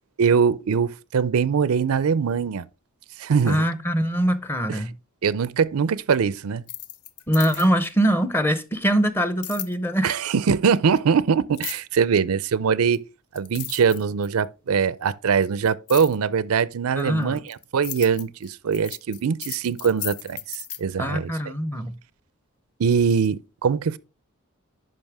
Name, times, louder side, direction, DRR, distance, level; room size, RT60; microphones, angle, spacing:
voice 1, 0.2-2.6 3.2-3.6 4.7-4.8 5.2-6.6 10.0-13.0 13.3-21.3 22.8-24.0, right 6 dB, 80° right, 0.5 m, -22 dB
voice 2, 3.5-5.0 7.3-10.2 17.0-17.5 21.0-21.9, equal, 10° left, 0.7 m, -23 dB
sound 1, 6.6-7.9 9.4-9.7 11.5-12.0 12.9-13.0 13.4-14.5 15.9-16.2 17.0-20.8, left 12 dB, 90° left, 0.7 m, -35 dB
11.0 x 5.4 x 3.4 m
head